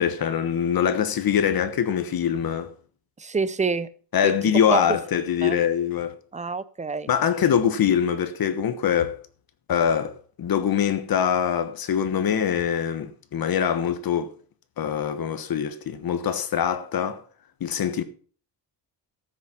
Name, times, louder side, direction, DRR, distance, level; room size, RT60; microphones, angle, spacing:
voice 1, 0.0-2.7 4.1-6.1 7.1-9.2 9.7-14.3 14.8-17.2 17.6-18.0, left 8 dB, 55° left, 1.2 m, -23 dB
voice 2, 3.2-3.9 4.2-4.3 4.7-5.0 5.4-5.6 6.3-7.1, right 4 dB, 15° right, 0.4 m, -27 dB
13.5 x 6.3 x 5.7 m
wide cardioid pair, 170°, 44 cm